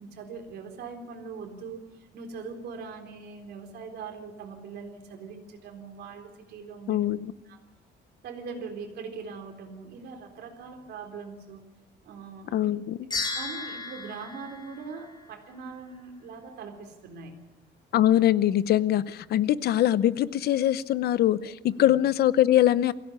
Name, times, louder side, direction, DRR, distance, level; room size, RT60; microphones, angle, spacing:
voice 1, 0.0-7.1 7.5-7.6 8.2-11.6 12.0-12.7 13.3-17.4 21.8-21.9, right 5 dB, 60° right, 4 dB, 3.9 m, -41 dB
voice 2, 6.9-7.3 12.5-13.0 17.9-22.9, left 12 dB, 60° left, 16 dB, 0.8 m, -23 dB
sound 1, 13.1-15.6, left 3 dB, 25° left, 4.9 m, -35 dB
22.5 x 16.5 x 9.6 m, 1.1 s
cardioid pair, 160°, 18 cm